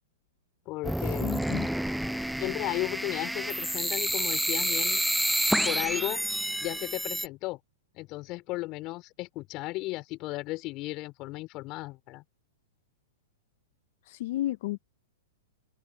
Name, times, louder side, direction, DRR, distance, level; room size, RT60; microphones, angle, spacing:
voice 1, 0.7-1.4 2.4-5.0 5.6-6.2 6.6-7.6 7.9-12.2, left 20 dB, 40° left, 4.4 m, -35 dB
sound 1, 0.8-7.3, equal, ahead, 0.4 m, -29 dB
voice 2, 1.2-1.7 14.1-14.8, left 15 dB, 60° left, 1.2 m, -32 dB
open air
hypercardioid pair, 130°, 0 cm